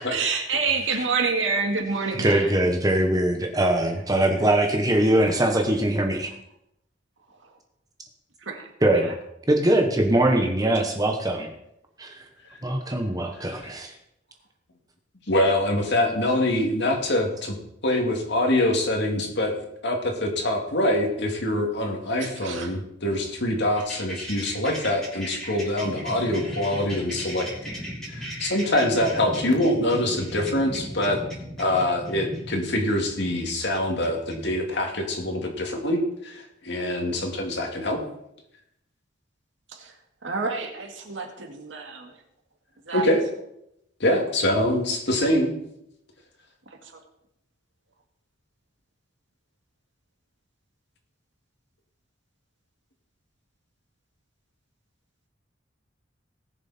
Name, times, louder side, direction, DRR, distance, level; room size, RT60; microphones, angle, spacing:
voice 1, 0.0-2.5 8.5-9.1 22.2-22.7 39.7-39.9 40.2-42.1 42.9-43.1 46.8-47.0, right 4 dB, 75° right, 3 dB, 2.2 m, -28 dB
voice 2, 2.2-6.3 8.8-9.2 9.5-11.5 12.0-12.2 12.6-13.9, right 1 dB, 20° right, 4 dB, 1.1 m, -22 dB
voice 3, 15.3-17.6 17.8-27.5 28.1-31.2 31.6-38.0 42.9-43.2 44.0-45.5, left 1 dB, 60° left, 2 dB, 2.4 m, -24 dB
sound 1, 23.8-34.3, equal, 5° left, 3.4 m, -37 dB
19.0 x 7.0 x 4.3 m, 0.80 s
head